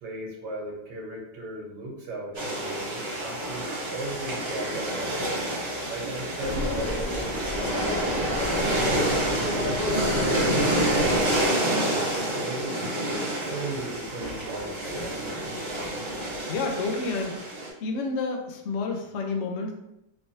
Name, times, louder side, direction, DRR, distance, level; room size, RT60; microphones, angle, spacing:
voice 1, 0.0-5.4 5.9-7.3 7.6-10.6 10.9-12.7 13.5-15.5, right 2 dB, 75° right, -1 dB, 1.5 m, -37 dB
sound 1, 2.3-17.7, right 1 dB, 30° right, 0.5 m, -28 dB
sound 2, 6.4-11.5, left 1 dB, 85° left, 0.4 m, -31 dB
voice 2, 16.5-17.5 17.8-19.7, left 3 dB, 65° left, 2 dB, 0.7 m, -29 dB
3.3 x 3.2 x 2.6 m, 0.82 s
omnidirectional pair, 1.8 m